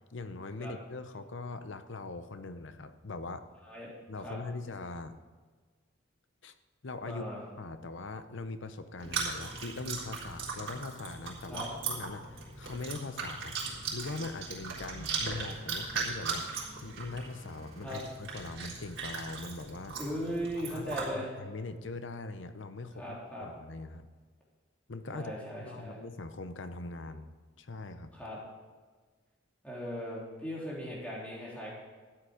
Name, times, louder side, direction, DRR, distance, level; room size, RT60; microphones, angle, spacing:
voice 1, 0.1-3.4 4.1-5.2 6.4-6.5 6.8-7.2 7.6-13.6 13.9-16.5 16.8-20.0 20.7-24.1 24.9-27.3 27.6-28.1, left 3 dB, 65° left, 10 dB, 0.8 m, -41 dB
voice 2, 7.0-7.4 11.5-11.7 17.8-18.0 19.9-21.3 23.0-23.5 25.1-26.0 28.1-28.4 29.6-31.7, equal, 5° left, -5 dB, 3.3 m, -38 dB
Chewing mastication, 9.0-21.1, right 4 dB, 70° right, 3.8 m, -38 dB
13.0 x 8.9 x 5.0 m, 1.4 s
head